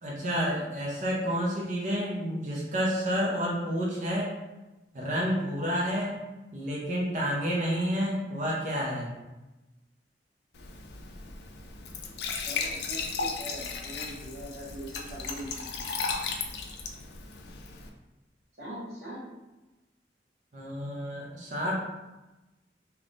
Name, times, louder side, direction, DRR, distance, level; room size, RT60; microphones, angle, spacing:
voice 1, 0.0-4.3 4.9-6.2 6.5-9.1 20.5-21.7, equal, 45° right, -4 dB, 0.6 m, -30 dB
Glass / Trickle dribble / Fill (with liquid), 10.5-17.9, left 4 dB, 70° left, 0.4 m, -36 dB
voice 2, 12.4-15.8 18.6-19.2, equal, 65° right, -7 dB, 1.3 m, -41 dB
3.4 x 2.9 x 2.5 m, 1.1 s
head